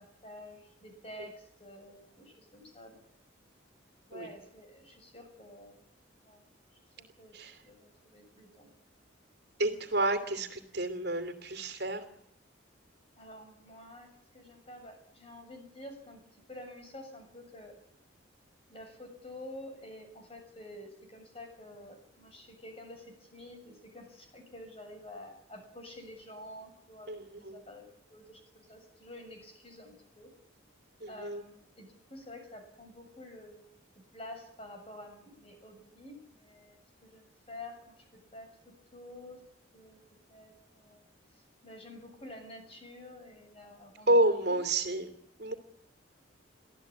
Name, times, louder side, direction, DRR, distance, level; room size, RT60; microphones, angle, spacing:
voice 1, 0.0-3.1 4.1-5.8 6.2-6.4 7.0-7.3 7.6-8.7 13.2-14.1 14.3-16.2 16.5-17.8 18.7-30.3 31.1-33.7 34.1-39.4 39.7-40.0 40.3-41.0 41.3-44.6, left 1 dB, 30° left, 4 dB, 7.0 m, -49 dB
voice 2, 9.6-12.1 27.1-27.6 31.0-31.4 44.1-45.1 45.4-45.5, right 1 dB, 55° right, 8 dB, 2.8 m, -30 dB
24.0 x 15.5 x 8.7 m, 0.73 s
head